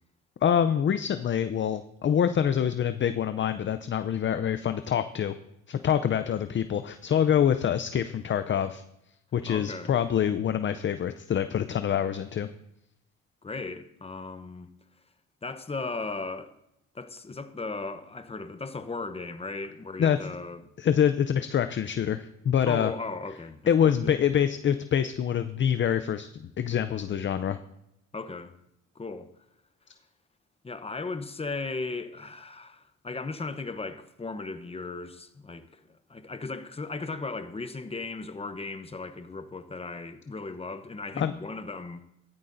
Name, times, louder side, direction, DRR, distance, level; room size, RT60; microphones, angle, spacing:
voice 1, 0.4-5.3 5.7-8.8 9.3-12.5 20.0-20.2 20.8-22.9 23.7-27.6 41.2-41.3, left 9 dB, 40° left, 0.5 m, -25 dB
voice 2, 9.5-10.0 13.4-14.7 15.4-16.5 16.9-20.7 22.7-23.7 28.1-28.5 28.9-29.3 30.6-42.0, left 3 dB, 20° left, 0.9 m, -36 dB
15.0 x 12.5 x 2.6 m
cardioid pair, 90°, 30 cm